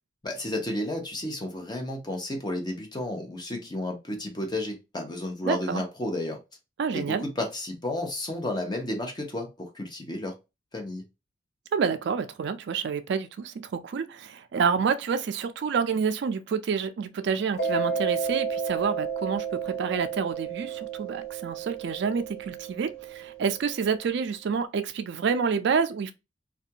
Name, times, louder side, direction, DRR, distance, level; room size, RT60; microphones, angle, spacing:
voice 1, 0.2-6.4 6.9-10.3 10.7-11.0, left 1 dB, 25° left, 0.7 m, -32 dB
voice 2, 5.4-5.8 6.8-7.2 11.7-26.1, right 6 dB, 65° right, 0.3 m, -28 dB
Mallet percussion, 17.6-24.0, right 5 dB, 55° left, 0.7 m, -32 dB
2.4 x 2.3 x 2.7 m
head